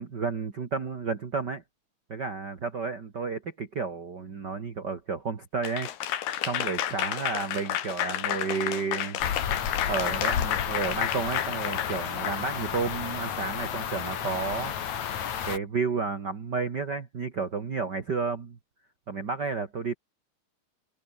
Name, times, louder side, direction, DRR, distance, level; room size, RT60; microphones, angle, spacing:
voice 1, 0.0-1.6 2.1-5.9 6.4-9.2 9.8-14.7 15.5-18.6 19.1-19.9, right 4 dB, 55° right, 1.2 m, -31 dB
Applause / Crowd, 5.6-12.9, left 11 dB, 65° left, 3.5 m, -31 dB
wind in the autumn forest - front, 9.2-15.6, left 8 dB, 50° left, 2.9 m, -32 dB
omnidirectional pair, 5.3 m